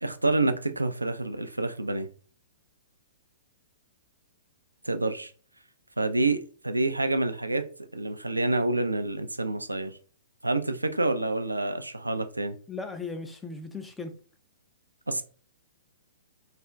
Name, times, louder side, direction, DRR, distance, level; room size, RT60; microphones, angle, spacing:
voice 1, 0.0-2.1 4.8-5.3 6.0-10.0 10.4-12.6 15.1-15.2, right 2 dB, 90° right, 0.3 m, -28 dB
voice 2, 12.7-14.1, left 3 dB, 10° left, 0.4 m, -37 dB
2.4 x 2.1 x 3.5 m
figure-of-eight pair, 115°, 0 cm